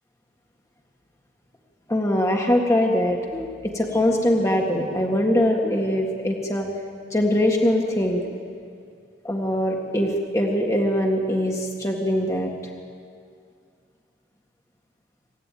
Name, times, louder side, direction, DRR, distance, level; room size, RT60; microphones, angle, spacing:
voice 1, 1.9-6.7 7.1-8.2 9.2-12.5, left 1 dB, 20° left, 0 dB, 1.8 m, -22 dB
26.5 x 13.5 x 9.0 m, 2.3 s
head